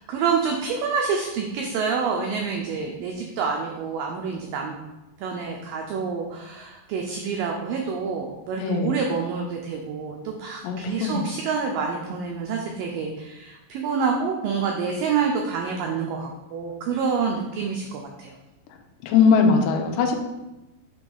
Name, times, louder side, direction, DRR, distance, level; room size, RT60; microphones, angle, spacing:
voice 1, 0.1-4.8 5.2-18.4, right 5 dB, 90° right, 1 dB, 1.9 m, -27 dB
voice 2, 8.6-9.0 10.6-11.2 19.0-20.2, left 5 dB, 85° left, 4 dB, 2.8 m, -20 dB
7.0 x 3.0 x 5.3 m, 1.0 s
omnidirectional pair, 4.7 m